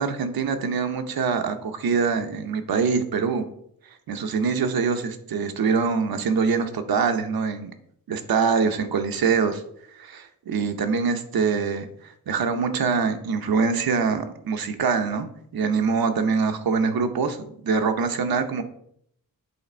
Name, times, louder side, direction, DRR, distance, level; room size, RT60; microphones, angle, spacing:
voice 1, 0.0-3.5 4.1-7.7 8.1-9.6 9.9-11.9 12.3-18.6, right 5 dB, 75° right, 7 dB, 0.8 m, -24 dB
8.6 x 3.3 x 4.3 m, 0.69 s
wide cardioid pair, 110°, 36 cm